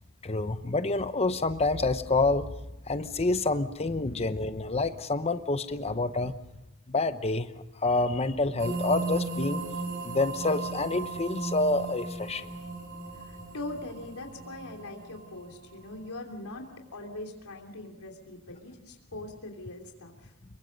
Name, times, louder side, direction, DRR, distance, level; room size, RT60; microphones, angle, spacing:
voice 1, 0.2-2.5 2.9-6.3 6.9-9.6 10.0-12.5, left 3 dB, 30° left, 10 dB, 0.9 m, -28 dB
sound 1, 8.6-16.3, right 3 dB, 55° right, 4.1 m, -36 dB
voice 2, 13.1-20.3, left 2 dB, 90° left, 2 dB, 3.1 m, -42 dB
26.5 x 23.0 x 5.3 m, 0.90 s
head